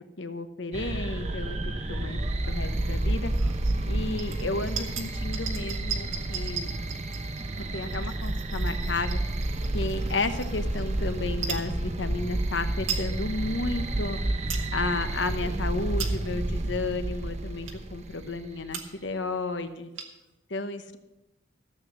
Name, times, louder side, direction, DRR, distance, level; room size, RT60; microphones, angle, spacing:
voice 1, 0.2-1.6 1.9-2.2 2.5-3.3 3.8-6.7 7.7-9.2 9.7-14.2 14.7-19.9 20.5-21.0, left 3 dB, 70° left, 9 dB, 1.0 m, -32 dB
sound 1, 0.7-18.7, right 1 dB, 35° right, 0.8 m, -30 dB
sound 2, 3.3-3.8 4.2-10.8 11.3-11.7 12.3-12.4 12.6-13.1 13.5-13.6 14.1-14.7 15.2-15.4 15.8-16.4 17.0-17.1 17.6-18.0 18.4-18.5 18.7-19.1 19.4-19.5 19.7-20.3, right 7 dB, 90° right, 1.7 m, -38 dB
14.0 x 8.1 x 6.1 m, 0.96 s
head